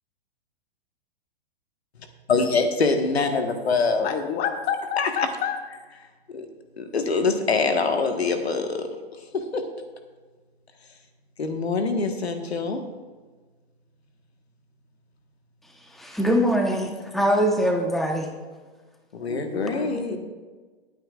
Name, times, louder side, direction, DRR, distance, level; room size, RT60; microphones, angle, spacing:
voice 1, 2.3-4.1 5.0-5.1 6.3-6.5 6.8-8.9 9.3-9.6 11.4-12.8 19.1-20.2, left 4 dB, 85° left, 6 dB, 1.5 m, -24 dB
voice 2, 4.0-5.6 19.2-20.2, left 8 dB, 30° left, 5 dB, 1.4 m, -29 dB
voice 3, 16.0-18.3 19.6-19.7, equal, ahead, 2 dB, 1.1 m, -23 dB
20.5 x 9.0 x 2.5 m, 1.4 s
hypercardioid pair, 120°, 31 cm